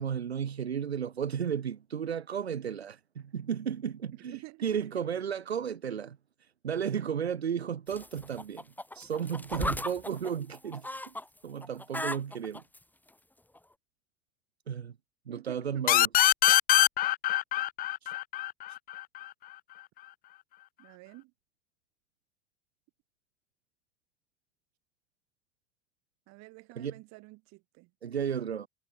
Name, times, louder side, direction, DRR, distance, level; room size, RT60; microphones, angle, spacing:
voice 1, 0.0-8.7 8.9-11.1 11.4-12.6 14.7-14.9 15.3-16.1 18.0-18.1 18.7-18.8 26.8-26.9 28.0-28.7, right 8 dB, 85° right, 1.1 m, -34 dB
voice 2, 4.1-5.0 15.3-15.9 20.8-21.3 26.3-27.9, right 24 dB, 55° right, 7.1 m, -49 dB
sound 1, 7.9-11.2 11.6-12.8 13.6-13.7, left 1 dB, 5° left, 2.0 m, -37 dB
sound 2, 15.9-19.3, left 15 dB, 30° left, 0.4 m, -23 dB
figure-of-eight pair, 65°, 31 cm